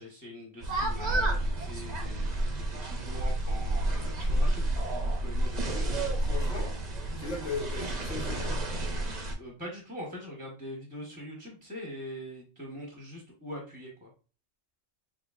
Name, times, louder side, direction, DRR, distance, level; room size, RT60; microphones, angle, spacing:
voice 1, 0.0-5.8 9.4-14.1, equal, 5° right, 1.1 m, -43 dB
sound 1, 0.6-9.3, right 1 dB, 40° right, 0.8 m, -30 dB
voice 2, 5.6-6.7 7.2-8.6, left 4 dB, 65° left, 2.4 m, -38 dB
4.8 x 3.2 x 2.5 m
omnidirectional pair, 1.3 m